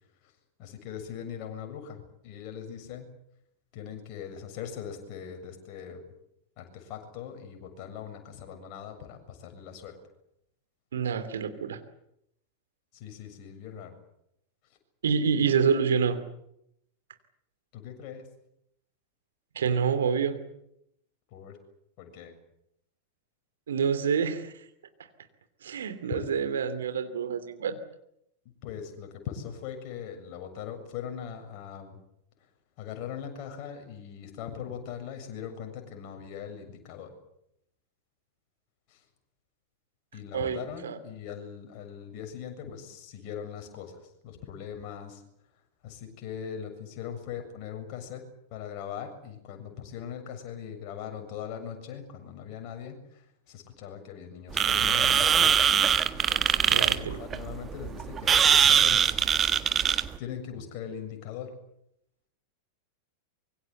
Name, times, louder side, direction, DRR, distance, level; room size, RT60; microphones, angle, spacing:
voice 1, 0.6-3.1 3.7-6.0 6.6-10.0 12.9-14.0 17.7-18.3 21.3-21.6 22.0-22.3 26.1-26.3 28.6-32.0 32.8-37.1 38.9-39.0 40.1-45.2 45.8-48.2 48.5-55.8 56.3-59.1 60.2-61.5, left 8 dB, 45° left, 5 dB, 7.3 m, -40 dB
voice 2, 10.9-11.8 15.0-16.2 19.5-20.4 23.7-24.6 25.6-27.8 40.3-41.0 56.7-57.2, right 6 dB, 65° right, 10 dB, 2.8 m, -27 dB
sound 1, 54.5-60.2, right 8 dB, 25° right, 1.6 m, -22 dB
25.0 x 23.5 x 8.1 m, 0.78 s
figure-of-eight pair, 90°, 0 cm